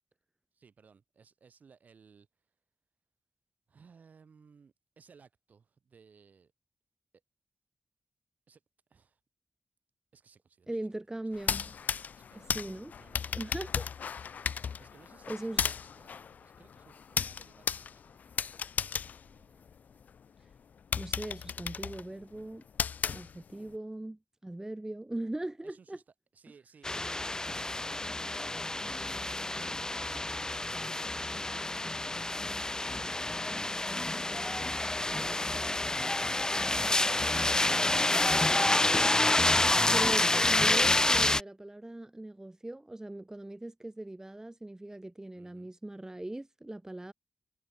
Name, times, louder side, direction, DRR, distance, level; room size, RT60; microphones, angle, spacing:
voice 1, 0.5-2.3 3.7-6.5 8.5-8.6 8.9-9.2 10.1-10.9 11.5-11.8 12.1-13.4 14.4-18.2 19.2-19.8 25.6-26.0 26.3-32.1 45.3-45.7, right 5 dB, 70° right, 7.1 m, -61 dB
voice 2, 10.7-11.7 12.3-12.9 13.3-13.9 15.3-15.7 21.0-22.6 23.1-26.0 39.8-47.1, right 1 dB, 20° right, 1.4 m, -40 dB
sound 1, 11.3-20.1 20.5-20.6 20.9-23.7, left 7 dB, 75° left, 0.3 m, -35 dB
sound 2, 26.8-41.4, left 2 dB, 25° left, 1.1 m, -28 dB
cardioid pair, 40°, 3 cm